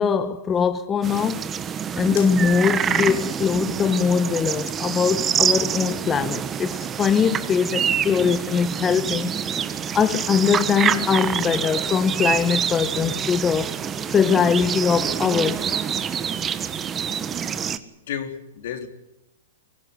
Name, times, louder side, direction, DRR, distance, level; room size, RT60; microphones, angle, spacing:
voice 1, 0.0-1.4 1.9-9.4 9.9-13.8 14.1-15.8, left 6 dB, 20° left, 1.1 m, -22 dB
sound 1, 1.0-17.8, right 8 dB, 20° right, 1.4 m, -26 dB
voice 2, 18.1-18.9, left 9 dB, 65° left, 3.9 m, -31 dB
24.0 x 16.0 x 9.7 m
hypercardioid pair, 125°, 0 cm